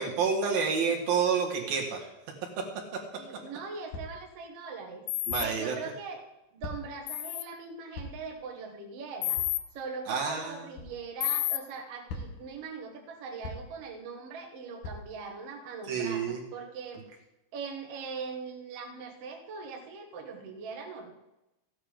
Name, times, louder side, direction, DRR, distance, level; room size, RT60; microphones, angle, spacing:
voice 1, 0.0-2.1 5.3-5.8 10.1-10.7 15.9-16.4, right 6 dB, 80° right, -1 dB, 3.6 m, -29 dB
voice 2, 3.2-5.1 5.4-9.4 9.7-17.0 17.5-21.1, right 5 dB, 55° right, 2 dB, 2.0 m, -41 dB
sound 1, 3.9-4.3 5.3-5.6 6.6-7.1 7.9-8.3 9.4-9.6 10.8-11.0 12.1-12.5 13.4-13.8 14.8-15.0, left 2 dB, 65° left, 2.9 m, -40 dB
sound 2, 5.1-5.5 7.1-7.4 9.2-9.6 11.2-11.6, left 14 dB, 90° left, 2.5 m, -30 dB
15.0 x 8.9 x 5.1 m, 0.95 s
omnidirectional pair, 4.1 m